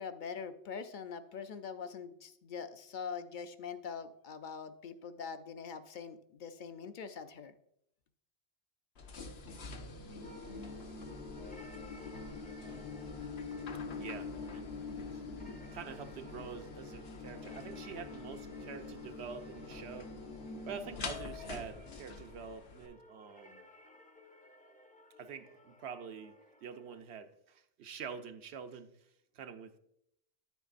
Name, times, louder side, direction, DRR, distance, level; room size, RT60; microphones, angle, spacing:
voice 1, 0.0-7.5, left 6 dB, 55° left, 10 dB, 0.7 m, -43 dB
sound 1, 9.0-22.9, left 4 dB, 75° left, 1.1 m, -44 dB
sound 2, 10.2-27.0, left 2 dB, 10° left, 0.4 m, -57 dB
voice 2, 14.0-14.7 15.1-15.2 15.7-20.2 20.7-23.7 25.2-26.4 26.6-28.9 29.3-29.8, right 6 dB, 85° right, 8 dB, 1.0 m, -46 dB
10.0 x 8.0 x 2.5 m, 0.75 s
omnidirectional pair, 1.1 m